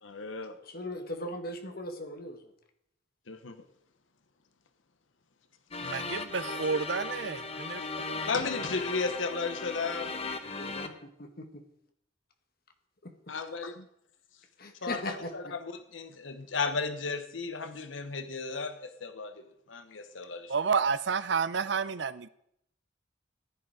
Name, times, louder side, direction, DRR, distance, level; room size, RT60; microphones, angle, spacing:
voice 1, 0.0-0.6 3.3-3.6 5.8-6.0 8.2-10.1 13.3-13.9 14.8-20.5, left 4 dB, 85° left, 9 dB, 1.1 m, -35 dB
voice 2, 0.6-2.5 8.7-8.9 10.4-11.6 13.0-13.3 14.6-15.5, left 1 dB, 50° left, 5 dB, 1.8 m, -39 dB
sound 1, 5.7-10.9, left 3 dB, 30° left, 1.0 m, -37 dB
voice 3, 5.8-7.8 8.1-8.2 20.5-22.3, right 5 dB, 65° right, 15 dB, 0.6 m, -30 dB
15.0 x 10.5 x 5.0 m, 0.74 s
head